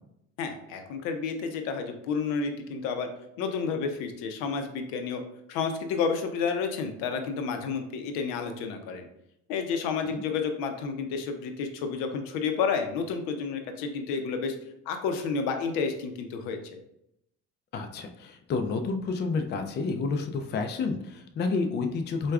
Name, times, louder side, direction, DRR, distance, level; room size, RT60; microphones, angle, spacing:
voice 1, 0.4-3.1 3.4-5.2 5.5-9.1 9.5-14.5 14.9-16.8, left 5 dB, 85° left, 6 dB, 0.6 m, -30 dB
voice 2, 17.7-22.3, left 4 dB, 35° left, 5 dB, 0.4 m, -29 dB
4.5 x 2.2 x 2.3 m, 0.77 s
supercardioid pair, 90°, 33 cm